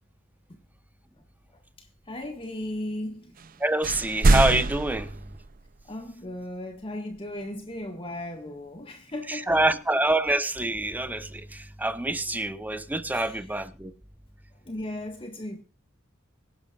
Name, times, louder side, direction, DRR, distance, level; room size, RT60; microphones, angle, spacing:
voice 1, 1.8-3.3 5.9-9.8 13.1-13.6 14.5-15.6, left 1 dB, 25° left, 1.8 m, -37 dB
sound 1, 3.4-3.5 3.8-5.9, right 2 dB, 45° right, 0.6 m, -24 dB
voice 2, 3.6-5.1 9.3-13.9, right 2 dB, 10° right, 1.0 m, -26 dB
25.0 x 11.0 x 2.5 m
head